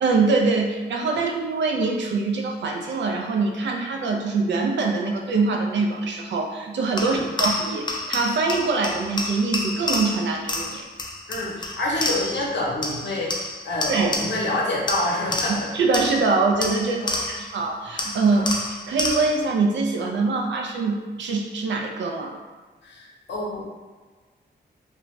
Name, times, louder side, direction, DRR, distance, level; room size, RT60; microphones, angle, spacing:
voice 1, 0.0-10.8 13.9-14.2 15.5-22.4, right 3 dB, 85° right, 2 dB, 0.4 m, -24 dB
sound 1, 7.0-12.5 12.8-14.6 14.9-17.6 18.0-19.5, left 2 dB, 25° left, 0.3 m, -29 dB
voice 2, 11.3-13.3 13.6-15.7 17.0-17.2 18.3-18.5 22.8-23.6, left 1 dB, 75° left, -4 dB, 0.8 m, -27 dB
2.5 x 2.2 x 3.0 m, 1.4 s
wide cardioid pair, 105°, 18 cm